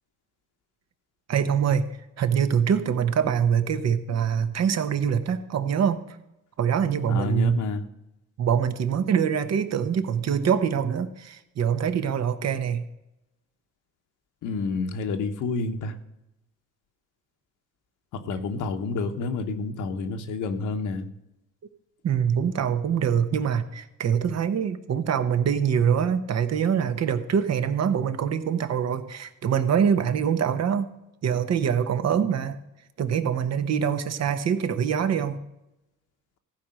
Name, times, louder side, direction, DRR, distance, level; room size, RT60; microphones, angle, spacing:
voice 1, 1.3-1.9 2.2-6.2 6.6-7.6 8.4-12.9 22.0-30.9 31.2-32.6 33.0-35.4, right 7 dB, 60° right, 10 dB, 1.1 m, -24 dB
voice 2, 7.1-7.8 14.4-16.0 18.1-21.1, left 3 dB, 80° left, 6 dB, 1.2 m, -29 dB
15.0 x 5.0 x 7.6 m, 0.90 s
cardioid pair, 90°, 30 cm